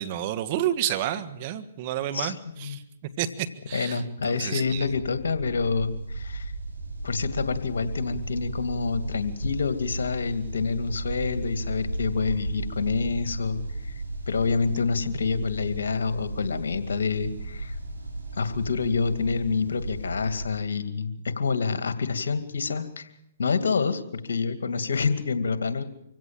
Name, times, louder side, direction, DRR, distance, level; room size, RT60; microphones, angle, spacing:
voice 1, 0.0-2.8 3.2-4.9, right 11 dB, 40° right, 11 dB, 1.5 m, -30 dB
voice 2, 2.1-2.8 3.7-6.5 7.0-13.6 14.3-17.8 18.4-23.1 23.4-25.8, left 5 dB, 75° left, 10 dB, 2.3 m, -27 dB
sound 1, 4.6-20.5, right 2 dB, 85° right, 4.9 m, -35 dB
25.5 x 16.5 x 7.7 m, 0.80 s
hypercardioid pair, 130°, 0 cm